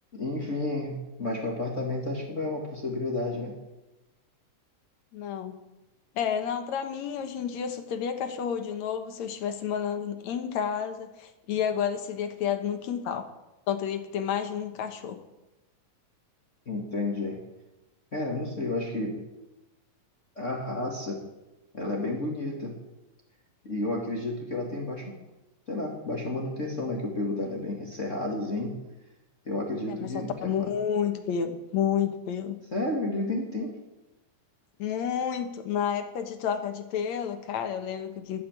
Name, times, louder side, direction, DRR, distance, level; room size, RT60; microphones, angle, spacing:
voice 1, 0.1-3.6 16.7-17.4 18.1-19.2 20.4-21.2 21.7-22.7 23.6-25.1 25.7-28.8 29.5-30.7 32.7-33.8, left 2 dB, 25° left, -1 dB, 2.0 m, -31 dB
voice 2, 5.1-5.6 6.2-13.3 13.7-15.2 29.9-32.6 34.8-38.4, left 8 dB, 65° left, 7 dB, 2.3 m, -30 dB
12.5 x 9.8 x 8.8 m, 1.0 s
omnidirectional pair, 3.7 m